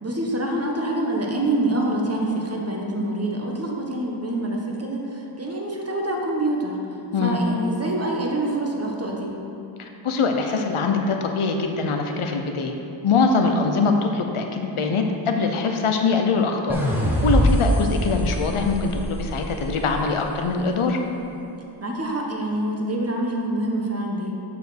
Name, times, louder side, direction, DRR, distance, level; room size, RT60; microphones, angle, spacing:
voice 1, 0.0-6.8 7.2-9.3 13.4-13.7 21.8-24.3, right 1 dB, 30° right, -1 dB, 1.2 m, -26 dB
voice 2, 9.8-12.7 13.0-16.8 17.2-21.0, left 4 dB, 85° left, 4 dB, 0.7 m, -23 dB
sound 1, 16.7-19.9, equal, 5° right, 1.3 m, -23 dB
6.9 x 5.0 x 6.3 m, 2.8 s
wide cardioid pair, 75°, 49 cm